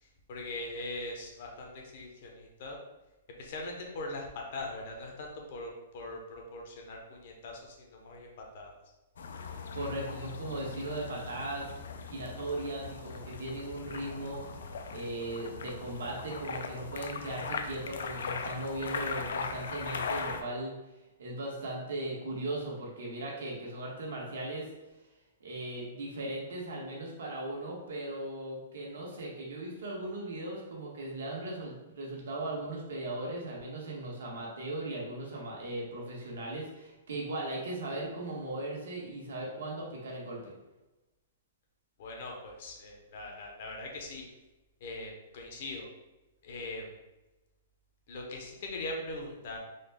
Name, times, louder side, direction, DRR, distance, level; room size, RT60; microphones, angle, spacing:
voice 1, 0.0-2.8 3.4-8.8 42.0-44.2 44.8-45.9 46.4-47.0 48.1-49.6, left 2 dB, 45° left, 1 dB, 0.7 m, -41 dB
sound 1, 9.2-20.4, left 5 dB, 75° left, 0.4 m, -39 dB
voice 2, 9.7-11.7 12.1-14.4 14.9-20.8 21.2-24.7 25.4-40.5, right 1 dB, 80° right, -3 dB, 1.3 m, -38 dB
3.9 x 2.2 x 3.4 m, 1.0 s
hypercardioid pair, 170°, 0 cm